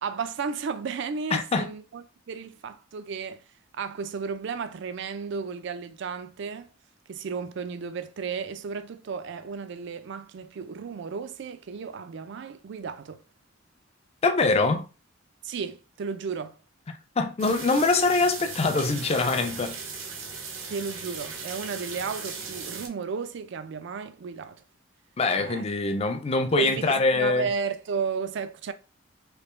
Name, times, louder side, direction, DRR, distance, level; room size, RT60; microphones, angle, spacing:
voice 1, 0.0-3.4 3.8-6.7 7.1-13.2 15.4-16.6 20.7-24.6 25.4-25.6 26.6-28.7, right 5 dB, 60° right, 0.4 m, -33 dB
voice 2, 1.3-1.7 14.2-14.8 17.2-19.8 25.2-27.5, left 3 dB, 30° left, 0.4 m, -23 dB
sound 1, 17.4-22.9, right 5 dB, 80° right, 0.8 m, -38 dB
3.3 x 2.8 x 3.0 m
head